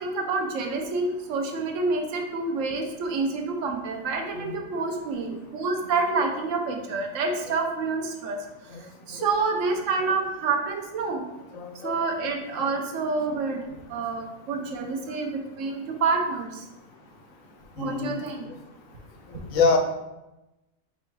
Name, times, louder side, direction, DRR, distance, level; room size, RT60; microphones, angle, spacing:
voice 1, 0.0-8.4 9.1-11.2 11.8-13.6 13.9-16.6 17.8-18.4, right 4 dB, 70° right, 3 dB, 1.0 m, -28 dB
voice 2, 4.3-4.9 5.3-5.4 6.2-6.3 8.7-9.3 11.5-11.9 12.5-12.6 17.8-18.2 19.3-19.8, left 4 dB, 85° left, 3 dB, 1.1 m, -27 dB
3.4 x 3.1 x 4.6 m, 0.99 s
omnidirectional pair, 1.4 m